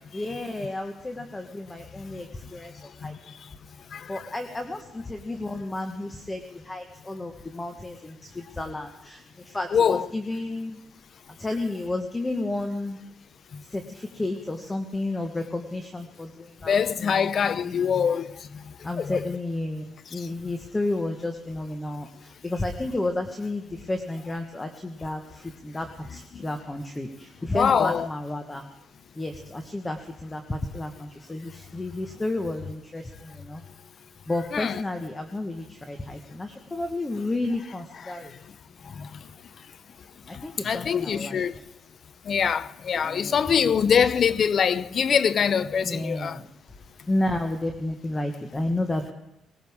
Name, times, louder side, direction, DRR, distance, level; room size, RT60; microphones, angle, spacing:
voice 1, 0.1-3.1 4.1-10.8 11.3-13.0 13.7-17.8 18.8-19.8 20.1-28.6 29.1-33.6 34.3-38.3 40.3-41.6 43.0-43.5 45.8-46.5 47.1-49.1, left 2 dB, 20° left, 1.4 m, -32 dB
voice 2, 3.9-4.2 9.7-10.1 16.7-18.3 19.0-19.2 27.5-28.1 34.5-34.8 38.0-38.1 39.0-39.1 40.6-41.5 42.3-46.4, left 7 dB, 55° left, 0.6 m, -23 dB
20.0 x 19.5 x 3.6 m
cardioid pair, 90°, 0 cm